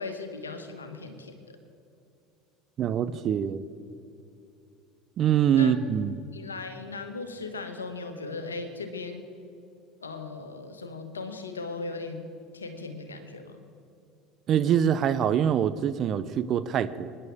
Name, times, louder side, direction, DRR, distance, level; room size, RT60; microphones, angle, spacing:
voice 1, 0.0-1.6 5.5-5.7 6.3-9.2 10.0-12.3 12.5-13.6, left 3 dB, 90° left, 7 dB, 1.3 m, -38 dB
voice 2, 2.8-3.6 5.2-6.2 14.5-17.1, right 9 dB, 45° right, 14 dB, 0.7 m, -24 dB
24.0 x 10.5 x 3.6 m, 2.6 s
hypercardioid pair, 70°, 0 cm